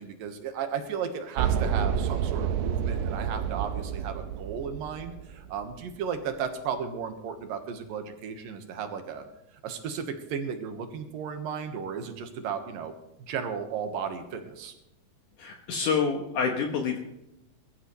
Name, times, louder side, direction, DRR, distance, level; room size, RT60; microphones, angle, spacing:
voice 1, 0.0-9.2 9.6-12.9 13.3-14.7, right 7 dB, 70° right, 6 dB, 3.0 m, -34 dB
sound 1, 1.4-5.6, right 8 dB, 85° right, 2.7 m, -29 dB
voice 2, 15.4-17.0, left 5 dB, 65° left, 2 dB, 2.4 m, -27 dB
22.0 x 13.5 x 3.3 m, 0.88 s
omnidirectional pair, 4.3 m